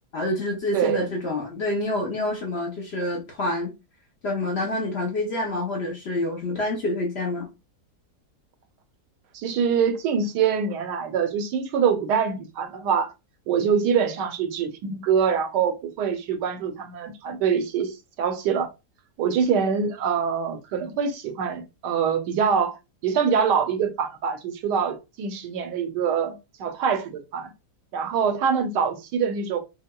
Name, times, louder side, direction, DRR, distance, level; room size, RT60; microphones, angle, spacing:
voice 1, 0.1-3.7 4.2-7.5, left 2 dB, 55° left, 0.7 m, -27 dB
voice 2, 0.7-1.1 9.3-13.1 13.5-18.7 19.2-22.7 23.0-27.5 27.9-29.6, right 6 dB, 90° right, 1.3 m, -24 dB
5.4 x 2.1 x 2.2 m
omnidirectional pair, 1.8 m